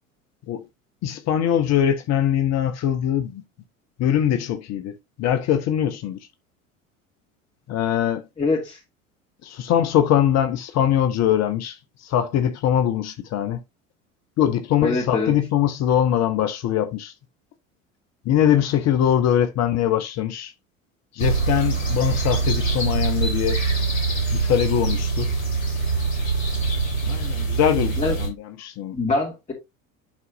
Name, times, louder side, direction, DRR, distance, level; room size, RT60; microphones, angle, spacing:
voice 1, 1.0-3.4 4.0-6.2 7.7-8.2 9.4-13.6 14.4-17.1 18.2-20.5 21.1-23.6 24.3-25.3 27.1-28.9, left 10 dB, 40° left, 0.9 m, -22 dB
voice 2, 8.4-8.8 14.8-15.3 28.0-28.1 28.9-29.5, left 3 dB, 20° left, 2.5 m, -23 dB
sound 1, 21.2-28.3, right 4 dB, 75° left, 3.1 m, -24 dB
11.5 x 4.1 x 2.7 m
figure-of-eight pair, 70°, 40 cm